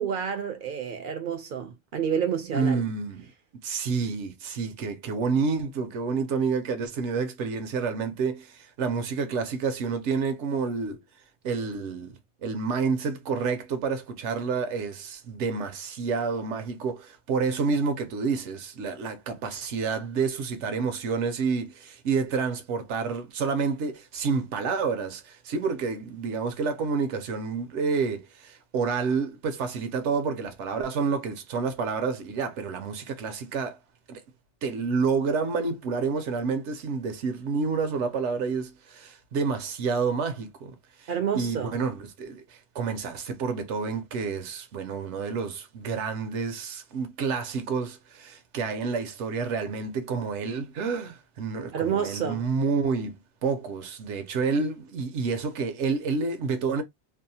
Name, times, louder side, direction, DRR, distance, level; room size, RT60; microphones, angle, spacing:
voice 1, 0.0-2.8 41.1-41.8 51.7-52.4, right 7 dB, 60° right, 0.6 m, -29 dB
voice 2, 2.5-3.3 3.6-11.0 11.4-33.8 34.1-34.2 34.6-56.8, right 5 dB, 75° right, 0.9 m, -29 dB
2.6 x 2.0 x 2.7 m
omnidirectional pair, 1.2 m